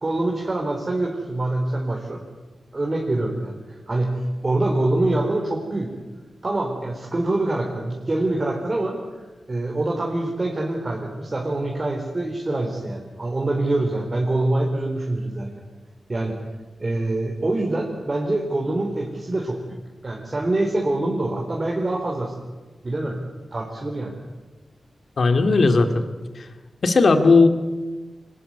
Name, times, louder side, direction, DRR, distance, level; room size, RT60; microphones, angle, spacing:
voice 1, 0.0-2.2 2.7-5.9 6.4-15.5 16.1-16.4 16.8-19.8 20.0-22.3 22.8-23.2 23.5-24.1, right 2 dB, 35° right, 0 dB, 4.0 m, -25 dB
voice 2, 25.2-26.0 26.8-27.5, left 3 dB, 60° left, 8 dB, 2.4 m, -16 dB
24.5 x 20.0 x 9.7 m, 1.3 s
wide cardioid pair, 95°, 0 cm